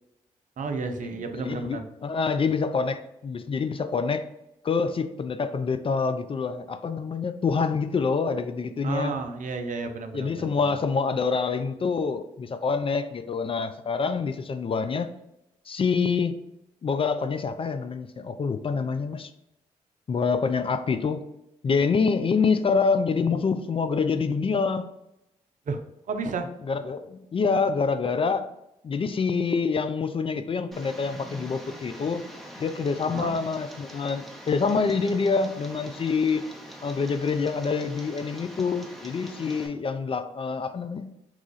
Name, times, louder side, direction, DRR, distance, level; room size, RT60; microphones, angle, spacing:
voice 1, 0.6-1.8 8.8-10.7 25.7-25.8 26.1-26.5 33.1-33.3, right 4 dB, 50° right, 0.5 m, -32 dB
voice 2, 1.4-4.2 4.6-9.1 10.1-15.1 15.7-16.4 16.8-19.3 20.1-21.2 21.6-24.9 26.7-28.5 28.8-32.3 32.6-36.4 36.8-41.1, left 5 dB, 35° left, 0.3 m, -26 dB
Tick, 30.7-39.7, equal, ahead, 0.9 m, -43 dB
3.0 x 2.4 x 3.8 m
hypercardioid pair, 40°, 16 cm